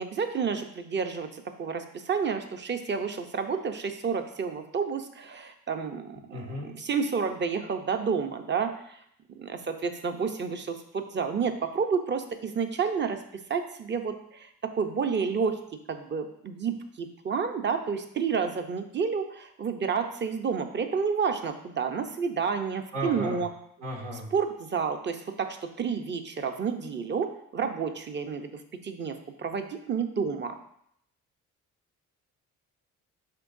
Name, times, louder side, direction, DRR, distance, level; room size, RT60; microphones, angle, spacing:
voice 1, 0.0-9.0 9.4-13.2 13.5-15.6 15.9-23.5 24.3-30.6, right 6 dB, 35° right, 7 dB, 0.8 m, -30 dB
voice 2, 6.3-6.7 22.9-23.4 23.8-24.3, right 1 dB, 90° right, -4 dB, 2.2 m, -34 dB
9.9 x 3.8 x 2.7 m, 0.71 s
cardioid pair, 90°, 30 cm